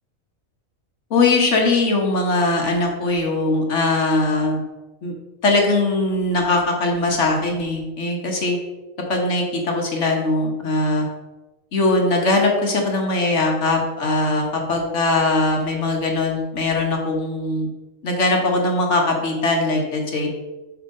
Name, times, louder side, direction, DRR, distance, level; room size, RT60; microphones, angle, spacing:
voice 1, 1.1-4.6 5.0-5.1 5.4-8.6 9.1-11.1 11.7-17.7 18.0-20.3, left 2 dB, 60° left, 1 dB, 1.5 m, -20 dB
7.3 x 3.6 x 5.3 m, 1.1 s
omnidirectional pair, 1.4 m